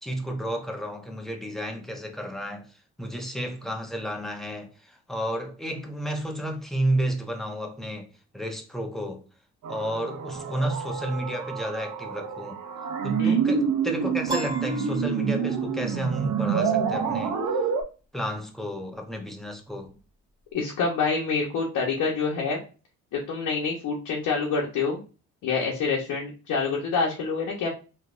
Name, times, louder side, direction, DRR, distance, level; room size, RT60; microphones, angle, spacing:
voice 1, 0.0-9.2 9.7-12.6 13.0-17.4 18.1-20.0, right 1 dB, ahead, 0.8 m, -32 dB
sound 1, 9.6-17.8, right 6 dB, 80° right, 0.7 m, -27 dB
Piano, 14.3-15.8, right 1 dB, 15° right, 1.5 m, -34 dB
voice 2, 20.5-22.6 23.1-25.0 25.4-27.7, left 4 dB, 75° left, 0.9 m, -27 dB
3.4 x 2.9 x 2.4 m
cardioid pair, 90°, 30 cm